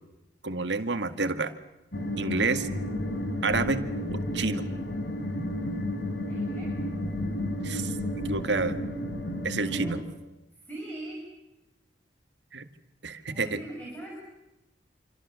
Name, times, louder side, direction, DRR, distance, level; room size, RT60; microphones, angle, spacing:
voice 1, 0.4-1.5 2.2-2.7 3.4-3.8 4.1-4.7 7.6-7.9 8.3-8.8 9.4-10.0 12.5-12.7 13.0-13.6, right 3 dB, 70° right, 10 dB, 1.9 m, -28 dB
sound 1, 1.9-10.0, left 1 dB, 60° left, 4.1 m, -32 dB
voice 2, 6.3-6.7 9.6-10.0 10.6-11.2 13.3-14.2, right 1 dB, 10° left, -2 dB, 6.2 m, -40 dB
28.0 x 26.0 x 7.0 m, 0.99 s
head